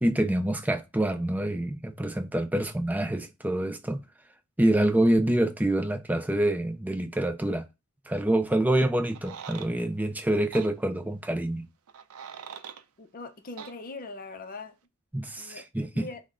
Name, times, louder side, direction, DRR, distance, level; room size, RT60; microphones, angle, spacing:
voice 1, 0.0-4.0 4.6-7.6 8.1-11.7 15.1-16.1, right 1 dB, 10° right, 0.4 m, -26 dB
sound 1, 9.0-9.7 10.5-10.7 11.9-12.8 13.6-13.7, right 7 dB, 85° right, 0.5 m, -42 dB
voice 2, 13.0-14.7 15.4-15.7 15.9-16.2, left 3 dB, 40° left, 0.6 m, -41 dB
5.8 x 2.1 x 3.6 m
head